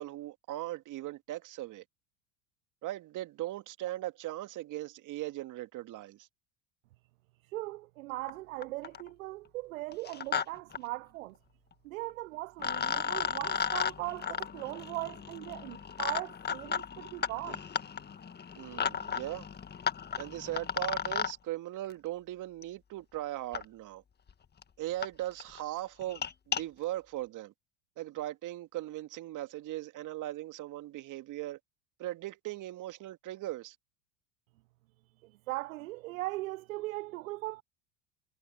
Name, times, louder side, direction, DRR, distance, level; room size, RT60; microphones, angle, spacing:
voice 1, 0.0-1.8 2.8-6.3 18.6-19.5 20.2-24.0 24.8-27.5 28.0-31.6 32.0-33.8, right 15 dB, 45° right, 2.2 m, -39 dB
voice 2, 7.5-11.4 11.8-17.6 35.2-37.6, right 20 dB, 75° right, 0.6 m, -39 dB
sound 1, 8.3-8.4 8.6-9.1 9.9-10.4 10.7-10.8 12.1-12.2 12.6-21.3 22.6-22.7 23.5-23.6 24.3-24.4 24.6-24.7 25.0-25.1 25.4-25.6 26.0-26.6, left 7 dB, 25° left, 1.7 m, -34 dB
hypercardioid pair, 85°, 41 cm